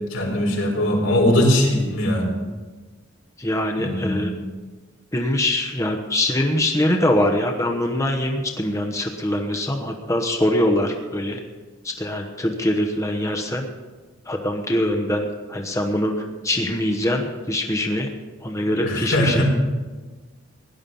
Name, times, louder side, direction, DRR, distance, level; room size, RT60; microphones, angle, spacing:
voice 1, 0.1-2.3 3.8-4.3 18.8-19.4, left 1 dB, 85° left, -1 dB, 4.4 m, -20 dB
voice 2, 3.4-4.3 5.1-11.4 11.8-13.7 14.3-18.1 18.4-19.4, left 1 dB, 15° left, 3 dB, 1.1 m, -23 dB
17.0 x 11.0 x 5.5 m, 1.3 s
head